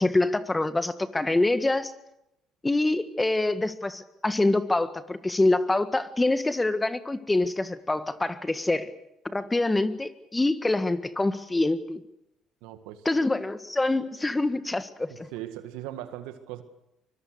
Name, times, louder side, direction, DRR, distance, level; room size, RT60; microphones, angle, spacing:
voice 1, 0.0-1.9 2.6-8.9 9.2-12.0 13.0-15.3, left 2 dB, 15° left, 12 dB, 1.7 m, -25 dB
voice 2, 12.6-13.0 15.1-16.6, right 13 dB, 80° right, 10 dB, 1.7 m, -39 dB
24.0 x 22.0 x 6.6 m, 0.85 s
hypercardioid pair, 65°, 0 cm